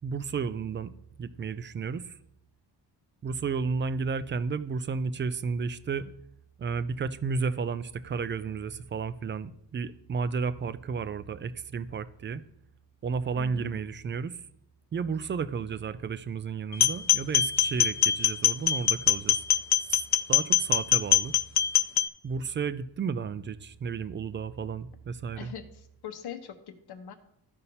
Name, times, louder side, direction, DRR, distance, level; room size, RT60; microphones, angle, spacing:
voice 1, 0.0-0.9 1.2-2.2 3.2-6.1 6.6-12.4 13.0-14.4 14.9-19.4 19.9-21.3 22.2-25.5, right 5 dB, 30° right, 13 dB, 0.4 m, -32 dB
voice 2, 13.3-13.7 25.3-27.1, left 8 dB, 65° left, 7 dB, 1.0 m, -42 dB
sound 1, 16.7-22.1, left 10 dB, 45° left, 0.4 m, -24 dB
14.0 x 5.4 x 2.8 m, 0.78 s
cardioid pair, 120°, 41 cm